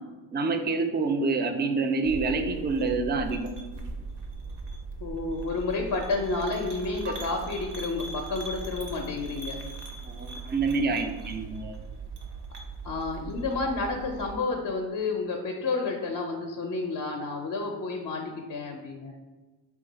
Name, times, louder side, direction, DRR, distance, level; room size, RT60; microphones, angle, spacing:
voice 1, 0.3-3.5 10.0-11.8, right 3 dB, 25° right, 6 dB, 0.3 m, -27 dB
sound 1, 2.0-14.4, right 4 dB, 55° right, 0.7 m, -39 dB
voice 2, 5.0-9.6 12.8-19.1, left 3 dB, 45° left, 2 dB, 0.5 m, -30 dB
2.8 x 2.4 x 3.9 m, 1.2 s
cardioid pair, 65°, 48 cm